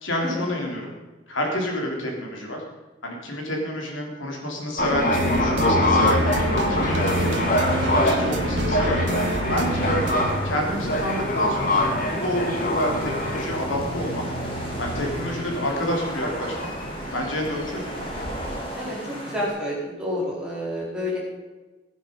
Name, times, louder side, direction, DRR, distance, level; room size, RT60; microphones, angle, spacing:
voice 1, 0.0-0.9 1.3-2.6 3.0-7.4 7.9-9.0 9.5-10.0 10.4-14.2 14.8-16.7 17.1-17.9, equal, 80° left, 0 dB, 3.7 m, -28 dB
sound 1, 4.8-18.6, left 1 dB, 45° left, 2.0 m, -25 dB
sound 2, 5.1-10.3, equal, 70° right, 1.5 m, -27 dB
sound 3, 6.1-19.5, equal, 25° left, 3.4 m, -34 dB
voice 2, 19.3-21.2, left 1 dB, 5° right, -6 dB, 4.2 m, -29 dB
17.0 x 9.8 x 5.5 m, 1.2 s
head